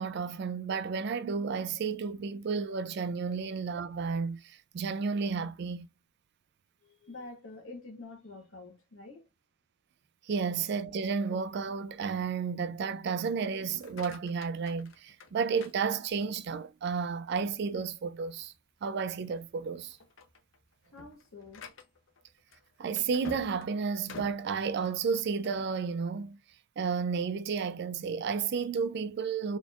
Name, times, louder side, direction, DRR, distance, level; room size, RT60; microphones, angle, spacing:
voice 1, 0.0-5.9 10.3-18.5 18.8-20.0 22.8-26.4 26.8-29.6, right 5 dB, 55° right, 0.3 m, -32 dB
voice 2, 6.8-9.3 20.9-21.7, left 3 dB, 85° left, 1.3 m, -47 dB
sound 1, 13.8-16.5 17.0-17.4 17.9-18.0 18.4-18.6 19.2-19.5 19.9-25.7, left 3 dB, 70° left, 0.6 m, -50 dB
4.2 x 2.9 x 2.3 m
head